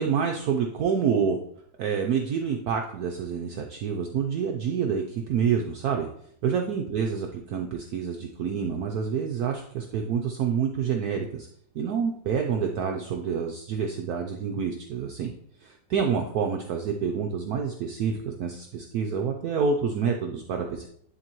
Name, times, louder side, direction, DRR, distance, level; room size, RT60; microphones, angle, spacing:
voice 1, 0.0-1.4 1.8-6.1 6.4-11.5 11.7-15.3 15.6-20.9, right 6 dB, 70° right, 3 dB, 0.9 m, -27 dB
10.5 x 3.8 x 2.9 m, 0.67 s
omnidirectional pair, 2.1 m